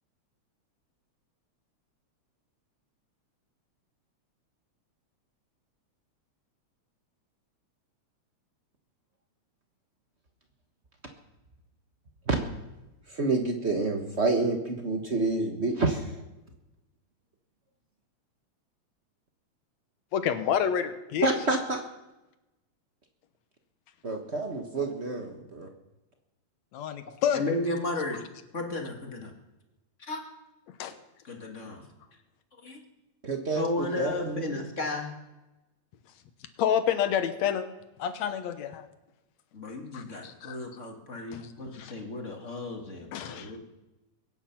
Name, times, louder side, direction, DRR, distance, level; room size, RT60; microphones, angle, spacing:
voice 1, 13.1-16.2 21.2-21.8 24.0-25.7 33.2-33.7 34.0-34.6, right 3 dB, 55° right, 4 dB, 0.7 m, -28 dB
voice 2, 20.1-21.3 26.7-27.4 30.8-30.9 36.6-37.6 38.0-38.9 39.9-40.6 41.3-41.5 41.7-41.9 43.1-43.5, left 9 dB, 70° left, 10 dB, 2.2 m, -28 dB
voice 3, 27.3-28.2 28.5-29.3 30.0-30.2 31.2-31.8 32.6-32.8 33.5-35.1 39.5-43.6, left 2 dB, 30° left, 3 dB, 1.7 m, -34 dB
22.5 x 9.8 x 5.9 m, 1.0 s
omnidirectional pair, 3.4 m